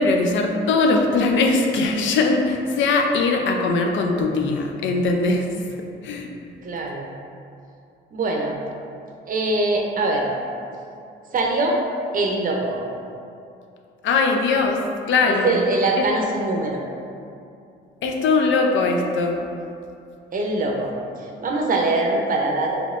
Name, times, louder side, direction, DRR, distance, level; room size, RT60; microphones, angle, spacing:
voice 1, 0.0-5.5 6.0-6.3 14.0-14.8 15.1-15.6 18.0-19.4, left 3 dB, 70° left, 2 dB, 0.4 m, -20 dB
voice 2, 6.6-7.1 8.1-8.6 9.3-10.3 11.3-11.8 12.1-12.8 15.3-16.8 20.3-22.8, right 2 dB, 45° right, 0 dB, 0.6 m, -23 dB
4.1 x 2.9 x 2.4 m, 2.6 s
cardioid pair, 90°, 20 cm